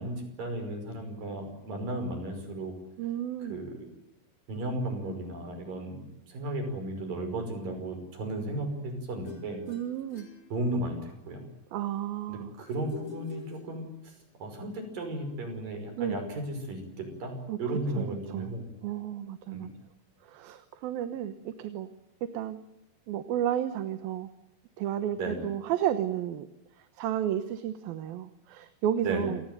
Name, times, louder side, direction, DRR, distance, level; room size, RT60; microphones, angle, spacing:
voice 1, 0.0-2.7 3.4-3.9 4.5-9.6 10.5-11.5 12.3-18.7 19.5-19.7 25.1-25.5 29.0-29.3, right 1 dB, 70° right, 6 dB, 7.2 m, -35 dB
voice 2, 3.0-3.6 9.7-10.3 11.7-12.5 16.0-16.2 17.5-17.6 18.0-18.5 18.8-19.7 20.2-21.9 22.2-22.6 23.1-24.3 24.8-26.5 26.8-29.4, right 11 dB, 85° right, 10 dB, 3.0 m, -32 dB
sound 1, 9.2-11.2 12.7-14.2, left 6 dB, 40° left, 4.9 m, -46 dB
28.5 x 19.0 x 9.2 m, 0.86 s
omnidirectional pair, 4.2 m